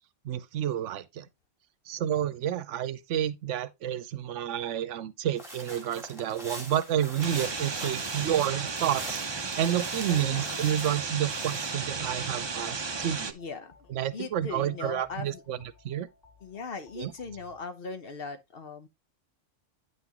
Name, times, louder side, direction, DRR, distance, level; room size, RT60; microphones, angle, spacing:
voice 1, 0.2-1.3 1.9-9.2 9.6-13.3 14.0-15.6 15.8-16.1 17.0-17.1, right 10 dB, 75° right, 1.0 m, -30 dB
sound 1, 5.4-11.7, equal, ahead, 2.3 m, -44 dB
voice 2, 7.1-7.6 10.1-10.7 11.9-12.1 13.3-15.4 16.4-18.9, left 4 dB, 50° left, 1.1 m, -40 dB
sound 2, 7.2-13.3, right 4 dB, 30° right, 0.5 m, -34 dB
sound 3, 11.8-17.6, left 2 dB, 20° left, 1.9 m, -56 dB
9.3 x 5.9 x 2.9 m
omnidirectional pair, 1.3 m